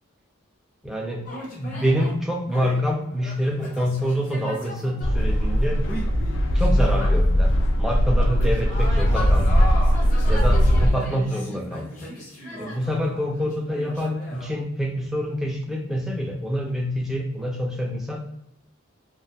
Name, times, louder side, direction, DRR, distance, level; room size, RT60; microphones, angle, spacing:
voice 1, 0.8-1.2 1.6-5.8 6.5-9.7 10.3-12.1 12.6-18.2, equal, ahead, 0 dB, 0.4 m, -26 dB
sound 1, 1.3-2.2 2.5-7.6 7.9-14.5, left 1 dB, 40° left, 0.7 m, -36 dB
sound 2, 5.0-10.9, equal, 70° left, 0.4 m, -19 dB
2.4 x 2.3 x 3.2 m, 0.81 s
head